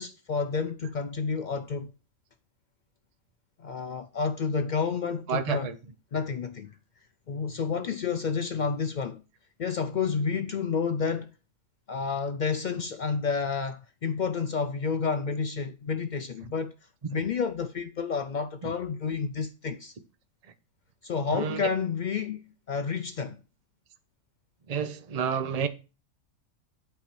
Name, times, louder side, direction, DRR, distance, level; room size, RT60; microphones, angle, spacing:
voice 1, 0.0-1.9 3.6-5.7 6.1-6.8 7.3-9.2 9.6-11.3 11.9-16.7 17.1-19.9 21.0-23.4, left 5 dB, 80° left, 0.4 m, -30 dB
voice 2, 5.3-5.8 17.1-17.2 18.6-18.7 21.3-21.7 24.7-25.7, right 7 dB, 35° right, 0.6 m, -30 dB
8.5 x 4.5 x 6.0 m
omnidirectional pair, 1.5 m